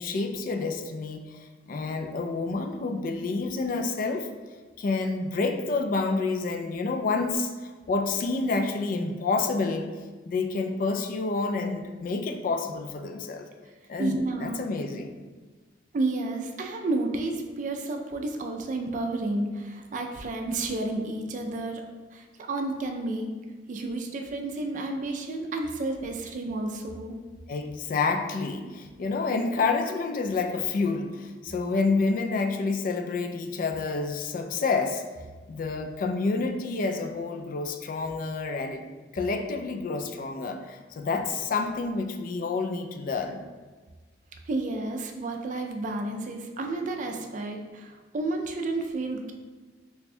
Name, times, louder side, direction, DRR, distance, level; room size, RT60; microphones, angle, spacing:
voice 1, 0.0-4.3 4.8-9.9 10.2-13.5 13.9-15.1 27.5-35.0 35.5-38.8 39.1-43.4, left 3 dB, 50° left, 6 dB, 0.3 m, -28 dB
voice 2, 14.0-14.6 15.9-21.8 22.1-23.3 23.7-27.2 44.5-49.3, right 2 dB, 45° right, 3 dB, 0.4 m, -31 dB
3.3 x 2.2 x 4.2 m, 1.3 s
head